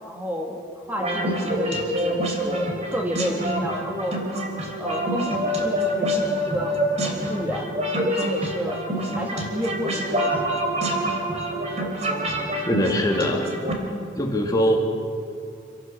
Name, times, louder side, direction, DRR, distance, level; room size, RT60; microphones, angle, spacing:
voice 1, 0.0-0.6 0.9-4.2 4.8-7.7 8.2-8.8 9.1-10.4, equal, 10° right, 1 dB, 2.0 m, -31 dB
sound 1, 1.0-13.7, equal, 35° right, 3.2 m, -26 dB
voice 2, 12.7-13.5 14.2-14.8, equal, 20° left, 2 dB, 2.0 m, -22 dB
27.5 x 17.0 x 6.6 m, 2.5 s
head